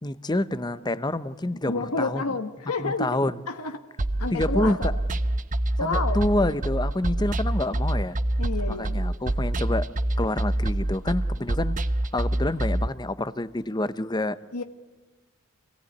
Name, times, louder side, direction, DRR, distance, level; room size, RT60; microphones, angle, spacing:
voice 1, 0.0-2.2 2.8-3.4 4.3-4.9 5.8-8.2 8.7-9.9 10.2-11.8 12.1-14.4, left 1 dB, 20° left, 15 dB, 0.8 m, -27 dB
voice 2, 1.7-3.1 3.5-3.8 4.2-4.9 5.8-6.2 8.4-9.0 14.5-14.6, left 3 dB, 90° left, 6 dB, 1.5 m, -29 dB
sound 1, 4.0-12.9, right 1 dB, 35° right, 0.8 m, -26 dB
26.5 x 18.0 x 9.4 m, 1.3 s
head